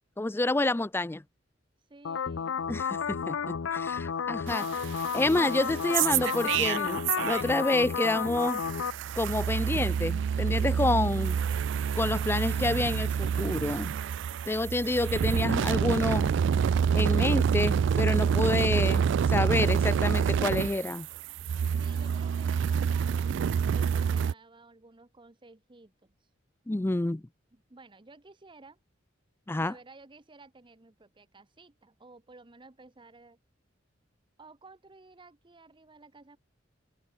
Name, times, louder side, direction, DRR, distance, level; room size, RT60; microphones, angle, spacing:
voice 1, 0.2-1.2 2.7-8.6 9.2-11.4 11.9-13.9 14.5-16.3 16.9-21.1 26.7-27.2 29.5-29.7, left 2 dB, 10° left, 0.4 m, -28 dB
voice 2, 1.9-2.8 21.8-26.3 27.5-28.8 29.6-33.4 34.4-36.4, right 3 dB, 25° right, 0.9 m, -54 dB
sound 1, 2.0-8.9, left 6 dB, 85° left, 0.5 m, -32 dB
sound 2, 4.5-7.7 8.0-24.3, right 7 dB, 65° right, 0.3 m, -27 dB
head